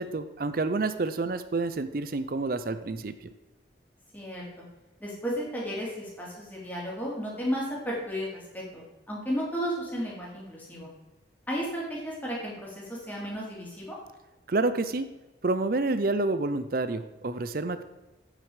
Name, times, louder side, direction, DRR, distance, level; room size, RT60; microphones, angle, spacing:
voice 1, 0.0-3.1 14.5-15.1 15.4-17.8, right 3 dB, 50° right, 11 dB, 0.6 m, -28 dB
voice 2, 4.1-4.6 5.0-10.9 11.5-14.0, equal, 10° left, -5 dB, 3.0 m, -34 dB
8.7 x 7.6 x 5.0 m, 1.1 s
head